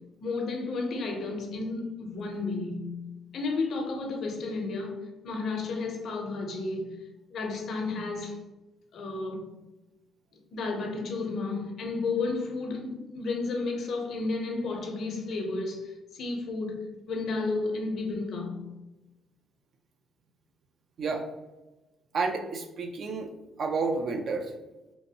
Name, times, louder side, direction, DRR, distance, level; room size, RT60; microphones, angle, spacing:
voice 1, 0.2-3.0 3.3-5.0 5.2-7.0 7.3-8.4 8.9-9.5 10.5-18.6, left 3 dB, 65° left, 0.6 m, -32 dB
voice 2, 22.1-23.3 23.6-24.5, right 4 dB, 60° right, 0.4 m, -30 dB
2.8 x 2.6 x 2.8 m
cardioid pair, 90°, 0 cm